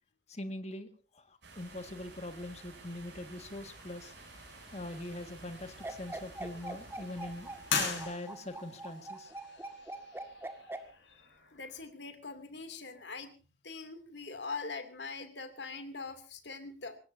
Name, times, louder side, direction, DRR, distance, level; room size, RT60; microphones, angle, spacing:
voice 1, 0.3-0.9 1.1-4.1 4.7-7.5 7.8-9.3, left 1 dB, 35° left, 8 dB, 1.8 m, -42 dB
sound 1, 1.4-8.1, right 3 dB, 65° right, 7.9 m, -52 dB
sound 2, 3.4-11.8, left 5 dB, 90° left, 7.2 m, -42 dB
sound 3, 5.8-10.8, right 2 dB, 15° right, 1.9 m, -42 dB
voice 2, 11.5-13.3 13.6-17.0, left 4 dB, 65° left, 8 dB, 2.7 m, -42 dB
24.5 x 19.0 x 2.7 m, 0.34 s
head